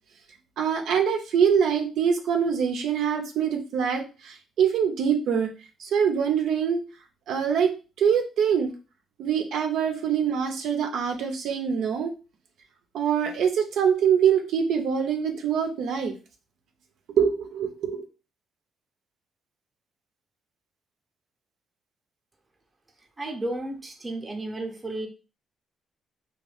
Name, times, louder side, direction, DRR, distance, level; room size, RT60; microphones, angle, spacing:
voice 1, 0.6-5.5 5.8-6.8 7.3-8.7 9.2-12.1 12.9-16.1 17.2-18.1, right 7 dB, 75° right, 3 dB, 0.5 m, -24 dB
voice 2, 23.2-25.1, right 2 dB, 20° right, 3 dB, 0.7 m, -33 dB
2.6 x 2.3 x 3.3 m, 0.32 s
cardioid pair, 90°, 0 cm